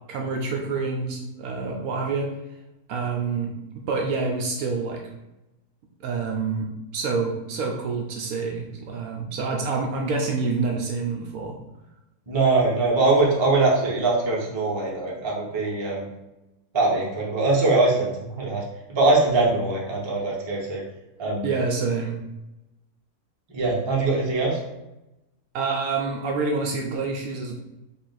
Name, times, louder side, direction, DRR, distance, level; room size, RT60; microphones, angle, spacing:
voice 1, 0.1-2.3 2.9-5.0 6.0-11.5 21.4-22.2 25.5-27.5, right 4 dB, 70° right, 1 dB, 0.9 m, -27 dB
voice 2, 12.3-16.1 16.7-20.8 21.2-21.5 23.5-24.6, right 3 dB, 25° right, -3 dB, 0.6 m, -22 dB
3.6 x 2.4 x 3.9 m, 0.97 s
omnidirectional pair, 1.7 m